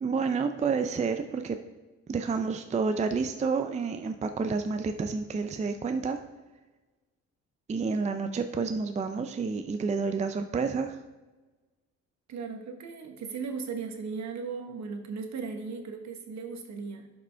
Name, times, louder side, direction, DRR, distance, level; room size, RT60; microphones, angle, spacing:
voice 1, 0.0-1.6 2.1-6.2 7.7-11.0, right 5 dB, 25° right, 7 dB, 0.4 m, -29 dB
voice 2, 12.3-17.1, right 5 dB, 65° right, 5 dB, 1.2 m, -37 dB
11.0 x 5.1 x 3.4 m, 1.2 s
cardioid pair, 90°, 30 cm